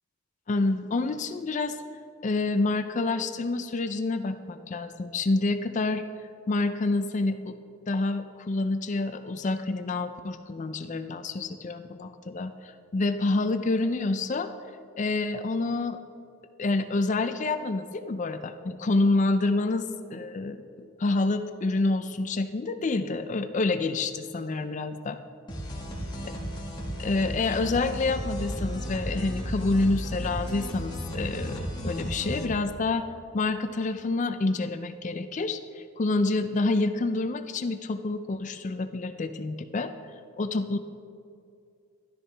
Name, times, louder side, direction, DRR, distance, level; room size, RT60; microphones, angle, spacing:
voice 1, 0.5-1.8 2.2-6.0 6.5-7.6 7.9-14.5 15.0-16.0 16.6-20.7 21.0-25.2 27.0-33.1 33.3-39.9 40.4-40.8, left 3 dB, 35° left, 9 dB, 0.4 m, -28 dB
sound 1, 25.5-32.5, equal, 20° left, 1.5 m, -34 dB
13.0 x 12.0 x 3.4 m, 2.4 s
head